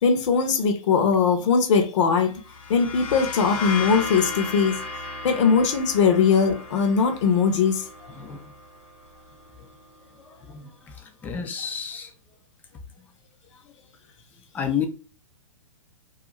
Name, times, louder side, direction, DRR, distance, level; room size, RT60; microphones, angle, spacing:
voice 1, 0.0-2.3 2.7-4.8 5.2-7.8, left 5 dB, 55° left, 0.7 m, -20 dB
sound 1, 2.4-10.0, left 3 dB, 75° left, 1.1 m, -35 dB
voice 2, 10.3-12.1 14.5-14.9, left 7 dB, 10° left, 0.3 m, -31 dB
2.4 x 2.3 x 3.0 m
hypercardioid pair, 130°, 18 cm